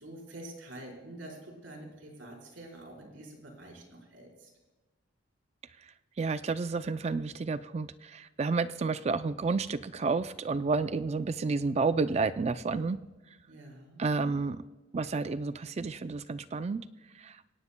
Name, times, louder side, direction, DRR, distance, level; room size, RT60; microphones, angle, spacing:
voice 1, 0.0-4.5 13.5-14.0, right 1 dB, 90° right, 0 dB, 4.6 m, -47 dB
voice 2, 6.2-13.0 14.0-14.6 14.9-16.8 17.2-17.4, right 4 dB, 35° right, 12 dB, 0.4 m, -30 dB
24.5 x 18.0 x 2.2 m, 1.1 s
head